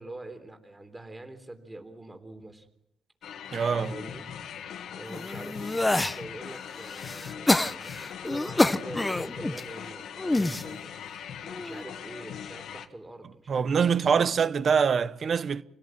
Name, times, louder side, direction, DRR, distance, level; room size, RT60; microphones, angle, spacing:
voice 1, 0.0-2.7 3.8-4.2 4.9-10.9 11.5-14.3, right 2 dB, 15° right, 3.6 m, -44 dB
sound 1, 3.2-12.9, left 8 dB, 70° left, 1.6 m, -40 dB
voice 2, 3.5-3.9 13.5-15.6, right 6 dB, 50° right, 1.0 m, -24 dB
sound 2, 5.1-6.2 6.7-9.6 10.2-10.6 11.4-11.8, left 2 dB, 15° left, 0.9 m, -27 dB
28.0 x 17.5 x 7.6 m
cardioid pair, 90°, 0 cm